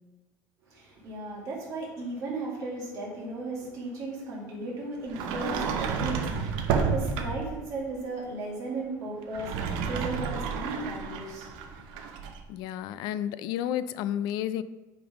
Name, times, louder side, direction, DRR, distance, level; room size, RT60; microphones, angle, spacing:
voice 1, 0.7-11.7, right 2 dB, 45° right, -4 dB, 2.0 m, -36 dB
Sliding door, 5.1-7.6 9.2-12.4, right 6 dB, 70° right, 0.7 m, -31 dB
voice 2, 12.5-14.6, left 11 dB, 60° left, 15 dB, 0.3 m, -31 dB
7.8 x 3.6 x 4.8 m, 1.1 s
cardioid pair, 175°, 8 cm